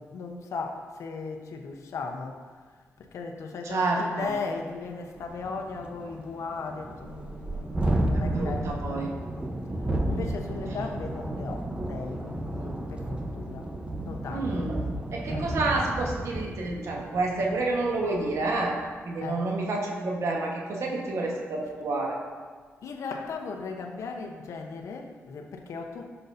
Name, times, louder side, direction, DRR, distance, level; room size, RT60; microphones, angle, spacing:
voice 1, 0.0-2.4 3.0-9.0 9.3-9.5 10.1-13.7 14.0-14.7 15.3-15.6 19.2-19.5 22.8-26.1, left 4 dB, 80° left, 3 dB, 0.9 m, -37 dB
voice 2, 3.7-4.3 8.1-9.1 10.1-10.2 14.3-18.8 19.1-22.2, right 2 dB, 70° right, 0 dB, 1.4 m, -29 dB
Thunderstorm, 4.3-4.4 4.8-4.9 5.1-18.8, right 1 dB, 20° right, 0.9 m, -32 dB
11.0 x 6.9 x 2.7 m, 1.5 s
cardioid pair, 75°, 5 cm